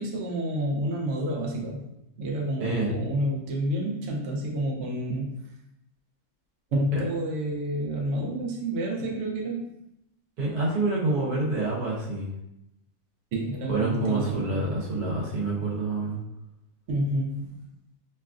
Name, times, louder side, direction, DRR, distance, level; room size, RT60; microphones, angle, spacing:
voice 1, 0.0-1.8 2.2-5.3 6.7-9.7 13.3-14.6 16.9-17.6, right 1 dB, 60° right, -2 dB, 0.9 m, -29 dB
voice 2, 2.6-2.9 10.4-12.3 13.7-16.2, right 2 dB, 85° right, -6 dB, 1.4 m, -27 dB
3.1 x 2.4 x 2.3 m, 0.85 s
omnidirectional pair, 1.6 m